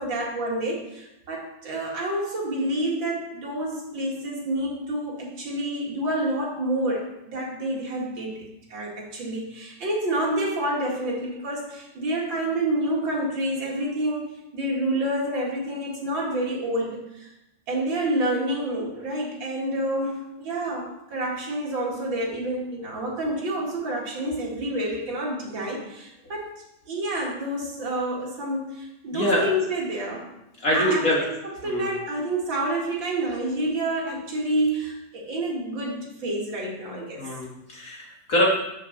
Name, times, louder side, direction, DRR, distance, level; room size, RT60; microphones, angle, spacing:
voice 1, 0.0-14.3 14.5-17.3 17.7-26.5 26.9-30.3 30.7-31.0 31.4-37.3, right 1 dB, 40° right, -3 dB, 2.1 m, -28 dB
voice 2, 29.1-29.4 30.6-31.2 31.6-31.9 37.2-38.5, equal, 35° left, -3 dB, 1.4 m, -24 dB
6.9 x 6.6 x 6.6 m, 0.88 s
omnidirectional pair, 3.9 m